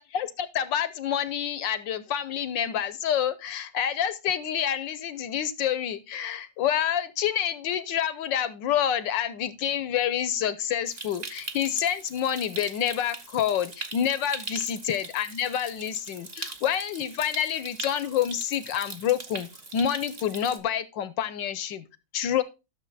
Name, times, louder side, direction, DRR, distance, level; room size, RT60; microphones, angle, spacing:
voice 1, 0.0-21.8 22.1-22.4, left 9 dB, 70° left, 15 dB, 1.3 m, -28 dB
Stream, 10.9-20.6, right 3 dB, 30° right, 0.9 m, -41 dB
12.5 x 6.6 x 3.9 m, 0.27 s
omnidirectional pair, 2.3 m